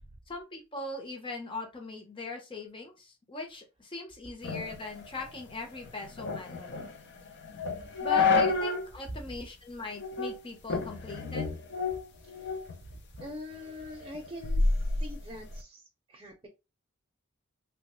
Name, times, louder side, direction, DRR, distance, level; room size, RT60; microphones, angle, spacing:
voice 1, 0.3-6.9 8.0-11.5, left 3 dB, 25° left, 2 dB, 0.7 m, -40 dB
sound 1, 4.4-8.9 9.3-9.4 10.0-10.4 10.7-12.8 13.2-15.6, left 4 dB, 55° left, 0.5 m, -30 dB
voice 2, 12.2-16.5, left 1 dB, 25° right, 0 dB, 0.6 m, -44 dB
3.0 x 2.2 x 3.0 m, 0.27 s
head